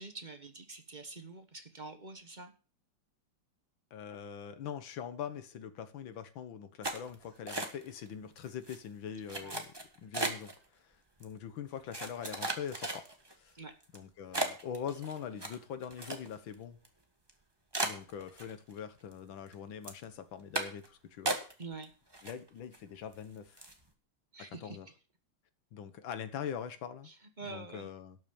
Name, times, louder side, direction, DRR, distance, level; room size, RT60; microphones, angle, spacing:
voice 1, 0.0-2.5 9.4-9.6 13.5-13.7 21.6-21.9 24.3-24.8 27.1-27.9, right 3 dB, 30° right, 1.0 m, -46 dB
voice 2, 3.9-10.9 11.2-13.0 13.4-13.5 13.9-16.8 17.8-21.3 22.2-23.6 24.5-24.9 25.7-27.1 27.4-28.2, left 8 dB, 75° left, 1.9 m, -43 dB
sound 1, 6.8-8.1 8.4-8.8 9.3-10.6 11.2-11.3 11.9-13.3 13.8-14.0 14.3-16.5 16.8-16.9 17.3-17.4 17.7-18.8 19.1-19.5 19.8-20.0 20.5-20.9 21.3-21.8 22.1-22.8 23.1-23.2 23.6-23.8, right 2 dB, 15° right, 1.3 m, -36 dB
12.0 x 6.3 x 7.1 m
omnidirectional pair, 2.1 m